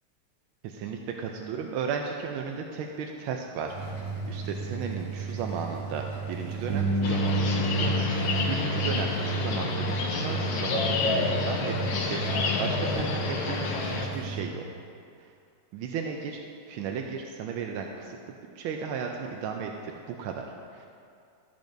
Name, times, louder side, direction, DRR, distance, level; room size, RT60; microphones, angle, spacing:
voice 1, 0.6-3.8 4.2-11.8 12.0-14.6 15.2-15.3 15.7-16.4 16.7-20.9, right 6 dB, 75° right, 2 dB, 1.3 m, -35 dB
sound 1, 3.7-14.4, right 4 dB, 15° right, 1.4 m, -36 dB
Bass guitar, 6.7-12.9, equal, 60° right, 1.4 m, -31 dB
sound 2, 7.0-14.1, left 4 dB, 65° left, 1.5 m, -29 dB
14.0 x 6.7 x 2.6 m, 2.4 s
omnidirectional pair, 2.4 m